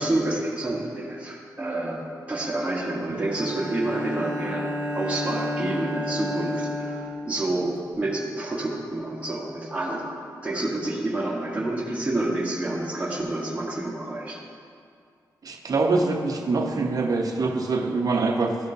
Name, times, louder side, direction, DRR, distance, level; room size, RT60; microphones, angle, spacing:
voice 1, 0.0-10.1 10.4-14.4, right 2 dB, 20° right, -5 dB, 1.3 m, -28 dB
Bowed string instrument, 3.3-7.9, left 1 dB, 35° right, 1.4 m, -31 dB
voice 2, 15.4-18.6, right 3 dB, 55° right, 3 dB, 0.8 m, -24 dB
12.5 x 5.2 x 2.7 m, 2.3 s
cardioid pair, 60°, 7 cm